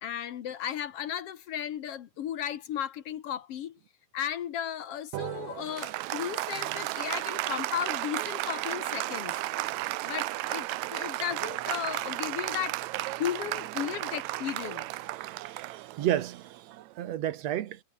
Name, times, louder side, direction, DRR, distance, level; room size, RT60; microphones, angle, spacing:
voice 1, 0.0-3.8 4.1-9.4 10.0-12.8 13.2-14.9, left 10 dB, 65° left, 1.6 m, -35 dB
Applause, 5.1-17.0, right 18 dB, 85° right, 1.6 m, -34 dB
voice 2, 15.2-17.8, right 12 dB, 65° right, 1.8 m, -32 dB
omnidirectional pair, 4.0 m